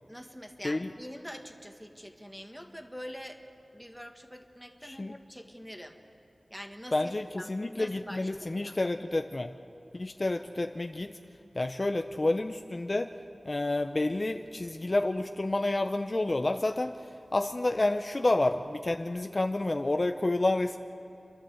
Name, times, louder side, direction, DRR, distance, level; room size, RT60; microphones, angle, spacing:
voice 1, 0.1-3.4 3.7-6.0 6.5-8.8, equal, ahead, 5 dB, 1.6 m, -45 dB
voice 2, 6.9-9.5 9.9-11.1 11.5-13.1 13.4-17.0 17.3-20.8, left 2 dB, 40° left, 6 dB, 0.6 m, -29 dB
29.0 x 11.5 x 7.9 m, 2.6 s
wide cardioid pair, 75°, 0 cm